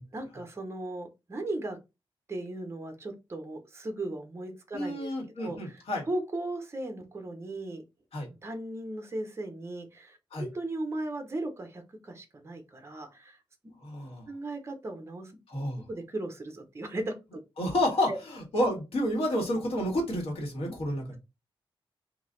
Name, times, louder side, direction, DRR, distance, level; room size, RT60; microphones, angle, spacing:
voice 1, 0.1-1.8 2.3-5.1 5.4-7.8 8.4-13.4 13.6-13.7 14.3-15.3 15.9-17.1 18.1-18.2 20.6-20.7, right 2 dB, 30° right, 5 dB, 0.8 m, -37 dB
voice 2, 4.7-6.0 8.1-8.3 10.3-10.5 13.8-14.2 15.5-15.8 17.6-18.1 18.5-21.0, left 1 dB, 85° left, -1 dB, 1.7 m, -29 dB
4.0 x 2.7 x 3.8 m, 0.26 s
wide cardioid pair, 145°, 10 cm